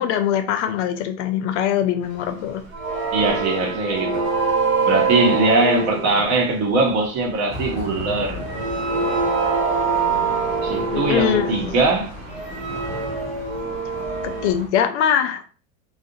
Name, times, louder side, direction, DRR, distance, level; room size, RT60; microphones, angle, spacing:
voice 1, 0.0-2.6 10.9-11.7 14.2-15.4, left 9 dB, 60° left, 0.5 m, -22 dB
sound 1, 2.7-6.6 8.0-8.1 8.3-11.8 12.3-14.5, right 4 dB, 80° right, 0.9 m, -24 dB
voice 2, 3.1-4.3 4.9-8.4 10.6-12.1, right 3 dB, 45° right, 0.8 m, -21 dB
sound 2, 7.5-14.7, left 1 dB, 15° right, 0.5 m, -35 dB
2.4 x 2.1 x 2.6 m
hypercardioid pair, 120°, 40 cm